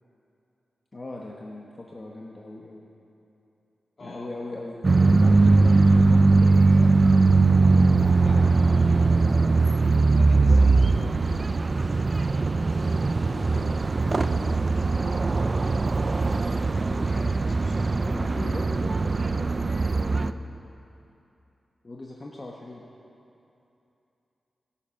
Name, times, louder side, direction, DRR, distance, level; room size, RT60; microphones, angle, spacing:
voice 1, 0.9-2.9 4.0-6.9 9.2-9.5 10.4-11.6 18.1-20.4 21.8-22.9, left 2 dB, 40° left, -2 dB, 1.2 m, -39 dB
voice 2, 4.0-4.3 8.1-8.5 10.1-10.7 13.2-15.9 16.8-18.2, left 2 dB, 60° left, -2 dB, 2.6 m, -44 dB
sound 1, 4.8-20.3, right 3 dB, 45° right, 0.4 m, -20 dB
21.5 x 7.4 x 5.8 m, 2.8 s
cardioid pair, 70°, 0 cm